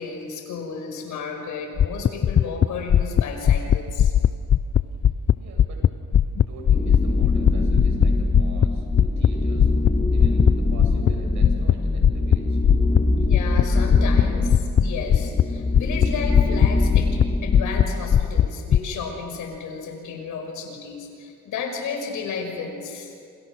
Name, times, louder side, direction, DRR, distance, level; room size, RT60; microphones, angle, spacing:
voice 1, 0.0-4.1 13.2-23.1, left 5 dB, 80° left, 4 dB, 5.9 m, -33 dB
sound 1, 1.8-5.9 6.1-9.3 9.5-9.9 10.2-10.5 10.8-11.1 11.4-11.8 12.0-12.4 12.6-13.0 13.3-13.6 13.9-14.2 14.5-14.8 15.1-15.4 15.7-16.7 16.9-17.2 17.5-17.8 18.1-18.8, left 9 dB, 40° left, 0.6 m, -17 dB
voice 2, 5.4-5.9 6.3-9.7 10.1-12.6, right 4 dB, 70° right, 2 dB, 7.4 m, -44 dB
sound 2, 6.7-18.5, left 2 dB, 20° left, 2.4 m, -23 dB
29.0 x 27.5 x 6.2 m, 2.3 s
cardioid pair, 90°, 30 cm